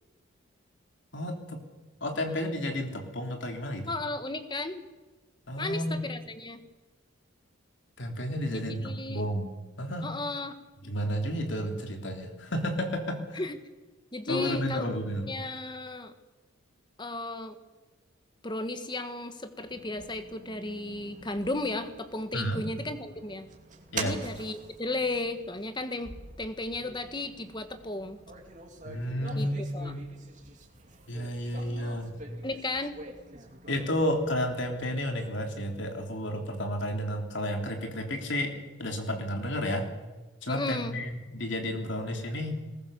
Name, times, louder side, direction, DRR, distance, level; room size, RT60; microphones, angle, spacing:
voice 1, 1.1-1.6 2.0-3.9 5.5-6.0 8.0-10.1 10.8-13.4 14.3-15.3 22.3-22.7 23.9-24.2 28.8-30.0 31.1-32.2 33.7-39.9 40.4-42.5, equal, 60° left, 4 dB, 3.3 m, -32 dB
voice 2, 3.8-4.9 5.6-6.6 8.5-9.2 10.0-10.6 13.3-13.6 14.1-14.9 15.3-16.1 17.0-17.6 18.4-23.5 24.0-26.1 26.4-28.2 29.3-29.9 32.4-33.0 40.5-40.9, left 2 dB, 20° left, 9 dB, 1.5 m, -34 dB
sound 1, 19.6-35.3, right 3 dB, 35° right, 2.8 m, -46 dB
21.5 x 20.0 x 6.9 m, 1.2 s
head